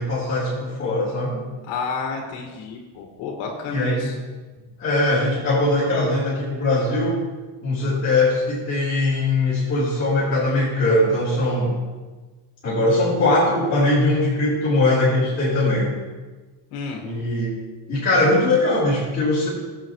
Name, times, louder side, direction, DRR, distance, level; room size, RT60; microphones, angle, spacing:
voice 1, 0.0-1.5 3.7-4.1 4.8-7.2 7.6-11.7 12.6-15.9 17.0-17.5 17.9-19.5, left 2 dB, 25° left, -11 dB, 3.9 m, -21 dB
voice 2, 1.7-4.1 16.7-17.0, left 4 dB, 85° left, 1 dB, 1.9 m, -30 dB
17.5 x 8.1 x 3.1 m, 1.3 s
cardioid pair, 165°, 49 cm